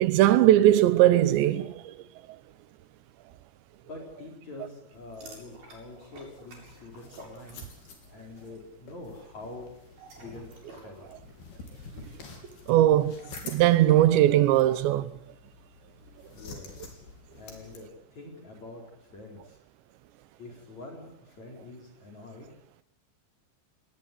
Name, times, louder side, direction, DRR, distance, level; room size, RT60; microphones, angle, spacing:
voice 1, 0.0-1.9 12.7-13.1 13.4-15.1, right 13 dB, 85° right, 3.3 m, -20 dB
voice 2, 3.8-7.7 8.1-9.7 10.2-11.1 16.3-17.0 17.4-18.8 19.1-19.6 20.4-22.5, left 2 dB, 40° left, 5.4 m, -45 dB
sound 1, 4.9-17.8, left 4 dB, 65° left, 5.5 m, -49 dB
sound 2, 5.1-8.0 8.3-8.6 9.8-14.2, right 2 dB, 55° right, 8.4 m, -50 dB
19.5 x 19.0 x 10.0 m
omnidirectional pair, 5.0 m